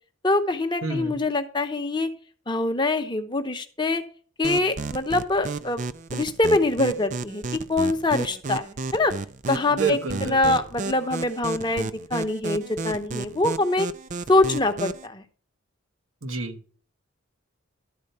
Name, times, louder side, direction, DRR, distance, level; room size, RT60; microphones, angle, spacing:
voice 1, 0.2-2.1 2.5-4.0 4.4-5.8 6.1-8.7 8.9-9.1 9.5-13.9 14.3-15.2, left 2 dB, 20° left, 7 dB, 0.8 m, -24 dB
voice 2, 0.8-1.2 9.7-10.6 16.2-16.6, right 4 dB, 85° right, 7 dB, 1.1 m, -29 dB
sound 1, 4.4-15.1, right 4 dB, 35° right, 0.4 m, -33 dB
12.0 x 4.3 x 6.6 m, 0.43 s
head